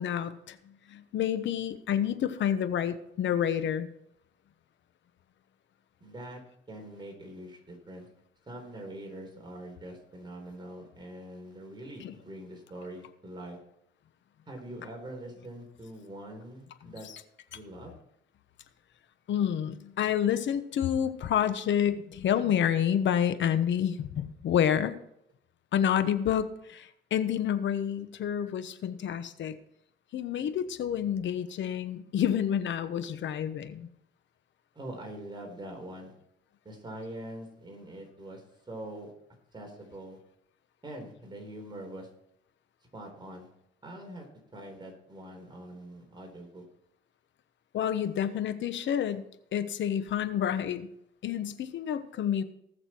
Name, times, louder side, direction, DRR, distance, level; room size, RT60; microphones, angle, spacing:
voice 1, 0.0-3.9 12.0-12.1 16.8-16.9 19.3-24.9 25.7-29.5 30.1-33.9 47.7-49.2 49.5-50.9 51.2-52.4, left 9 dB, 70° left, 11 dB, 1.1 m, -29 dB
voice 2, 6.0-6.4 6.7-8.1 8.5-13.6 14.5-17.1 17.5-17.9 34.7-36.1 36.6-39.1 39.5-40.2 40.8-42.1 42.9-43.5 43.8-44.3 44.5-46.6, right 1 dB, 25° right, 1 dB, 4.0 m, -43 dB
19.5 x 6.7 x 4.5 m, 0.75 s
cardioid pair, 90°, 20 cm